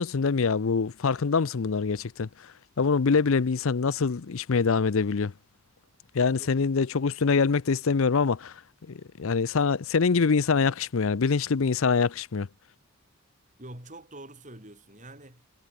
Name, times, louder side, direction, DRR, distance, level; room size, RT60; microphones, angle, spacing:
voice 1, 0.0-2.3 2.8-5.3 6.1-8.5 8.9-12.5, left 5 dB, 65° left, 0.6 m, -24 dB
voice 2, 13.6-15.5, right 1 dB, 35° right, 7.8 m, -45 dB
head